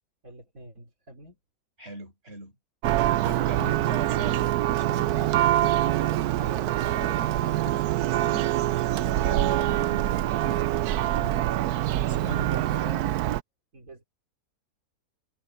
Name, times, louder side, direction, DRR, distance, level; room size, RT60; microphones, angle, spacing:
voice 1, 0.2-1.4 12.1-13.2 13.7-14.1, right 1 dB, 60° right, 4.6 m, -45 dB
voice 2, 1.8-2.5 3.1-5.3 8.1-8.9 9.2-10.5 12.0-13.0, right 2 dB, 40° right, 6.6 m, -40 dB
Church bell, 2.8-13.4, right 14 dB, 80° right, 1.1 m, -25 dB
sound 1, 4.9-5.2 5.5-5.9 6.2-6.5 6.9-7.3 7.5-7.9 8.2-8.6 8.9-9.2 9.6-10.0 10.4-10.7 11.1-11.5, left 10 dB, 70° left, 2.0 m, -46 dB
omnidirectional pair, 1.6 m